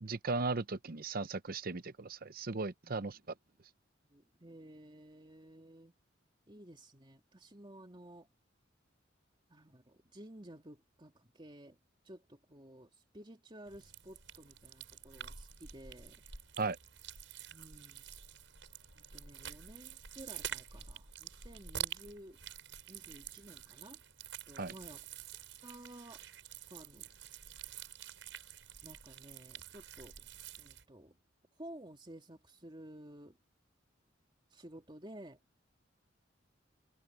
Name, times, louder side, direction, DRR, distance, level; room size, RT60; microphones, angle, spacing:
voice 1, 0.0-3.2 16.6-16.8 24.6-24.7, right 3 dB, 50° right, 0.8 m, -36 dB
voice 2, 4.1-5.9 6.5-8.3 9.5-11.8 12.0-16.2 17.5-18.0 18.9-22.4 22.9-24.0 24.5-25.0 25.6-26.2 26.7-27.1 28.8-30.3 30.6-31.2 31.6-33.4 34.5-35.4, right 1 dB, 25° right, 2.7 m, -53 dB
sound 1, 13.7-30.8, right 9 dB, 75° right, 5.9 m, -48 dB
head